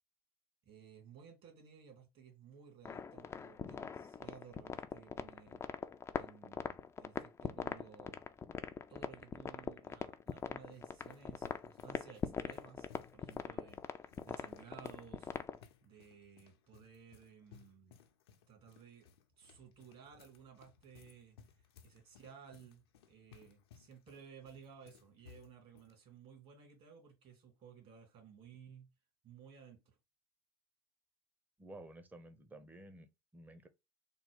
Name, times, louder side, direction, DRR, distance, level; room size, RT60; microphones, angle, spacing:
voice 1, 0.7-5.6 6.1-8.2 8.9-15.3 15.8-18.0 18.5-19.1 19.4-28.9 29.2-30.0, right 7 dB, 50° right, 2.4 m, -57 dB
sound 1, 2.8-15.6, left 6 dB, 20° left, 0.4 m, -41 dB
sound 2, 9.8-26.0, left 8 dB, 75° left, 0.7 m, -63 dB
voice 2, 31.6-33.7, right 1 dB, 15° right, 0.8 m, -53 dB
3.7 x 2.3 x 3.5 m
hypercardioid pair, 85°, 13 cm